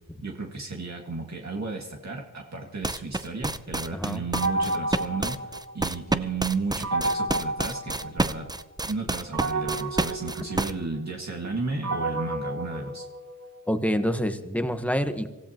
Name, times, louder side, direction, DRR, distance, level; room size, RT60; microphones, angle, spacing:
voice 1, 0.2-8.5 8.9-13.1, right 3 dB, 55° right, 0 dB, 2.0 m, -33 dB
sound 1, 2.8-10.7, right 2 dB, 10° right, 0.6 m, -28 dB
voice 2, 3.9-4.2 13.7-15.3, equal, 5° left, 8 dB, 1.2 m, -27 dB
sound 2, 4.3-6.1 6.8-8.6 9.3-13.6, right 2 dB, 70° right, 2.0 m, -31 dB
25.5 x 15.5 x 3.0 m, 1.1 s
wide cardioid pair, 70°, 34 cm